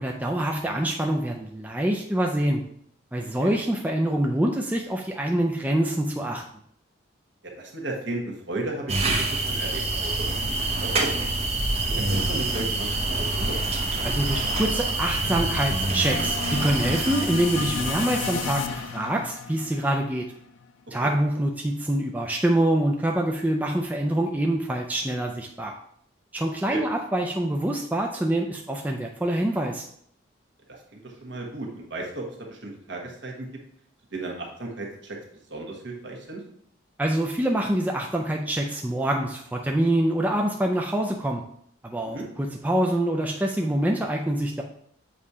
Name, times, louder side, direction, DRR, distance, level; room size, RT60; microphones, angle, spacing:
voice 1, 0.0-2.6 3.1-6.4 14.0-20.2 20.9-25.7 26.3-29.9 37.0-41.4 41.8-44.6, right 1 dB, 10° right, 1 dB, 0.3 m, -25 dB
voice 2, 7.4-11.3 11.9-13.6 21.0-21.1 26.7-26.8 30.7-33.5 34.1-35.2 35.5-36.4 42.0-42.2, right 2 dB, 65° right, 0 dB, 1.3 m, -35 dB
sound 1, 8.9-18.9, right 2 dB, 30° right, 0.7 m, -27 dB
sound 2, 12.4-20.7, left 5 dB, 70° left, 0.4 m, -35 dB
7.3 x 2.8 x 4.8 m, 0.67 s
head